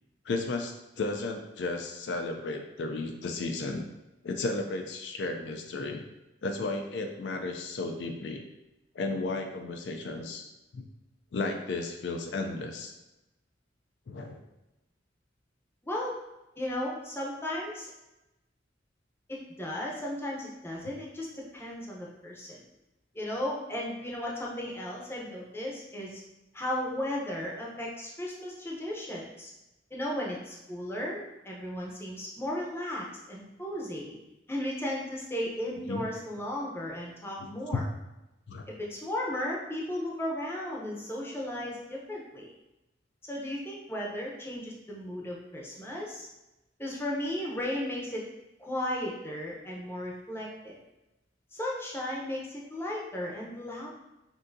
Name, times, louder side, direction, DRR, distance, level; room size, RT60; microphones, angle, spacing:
voice 1, 0.3-3.8 4.2-6.0 6.4-8.4 9.0-10.5 10.7-10.8 11.3-12.9 14.1-14.4 35.9-36.0 37.7-37.8 38.5-38.7, left 3 dB, 70° left, 4 dB, 0.4 m, -33 dB
voice 2, 16.6-17.9 19.3-22.6 23.1-26.2 26.5-29.5 29.9-34.1 34.5-37.8 38.7-42.5 43.3-46.3 46.8-48.2 48.6-50.8 51.5-53.9, left 1 dB, 15° left, -3 dB, 0.7 m, -35 dB
6.2 x 2.6 x 2.6 m, 0.98 s
head